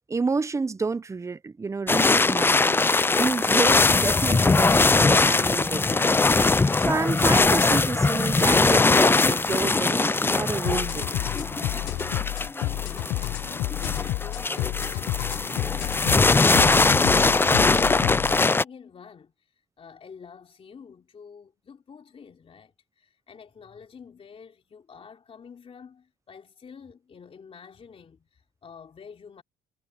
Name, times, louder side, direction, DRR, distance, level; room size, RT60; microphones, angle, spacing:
voice 1, 0.1-2.8 3.2-6.2 6.8-11.3, right 4 dB, 15° right, 0.7 m, -29 dB
sound 1, 1.9-18.6, left 3 dB, 15° left, 0.4 m, -21 dB
sound 2, 10.6-18.4, left 19 dB, 80° left, 0.5 m, -30 dB
voice 2, 11.4-16.6 17.0-19.3 19.8-29.4, left 6 dB, 35° left, 3.2 m, -48 dB
cardioid pair, 110°, 17 cm